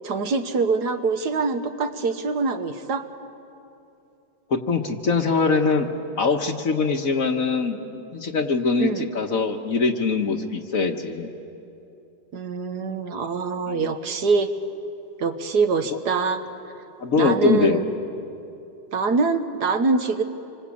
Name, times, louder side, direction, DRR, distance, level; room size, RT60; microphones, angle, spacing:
voice 1, 0.0-3.1 8.8-9.1 12.3-14.5 15.2-16.4 17.2-17.8 18.9-20.2, right 4 dB, 60° right, 8 dB, 1.6 m, -24 dB
voice 2, 4.5-5.9 6.2-11.3 13.7-13.9 17.0-17.8, left 4 dB, 50° left, 6 dB, 1.5 m, -23 dB
27.0 x 24.5 x 8.5 m, 2.8 s
omnidirectional pair, 2.0 m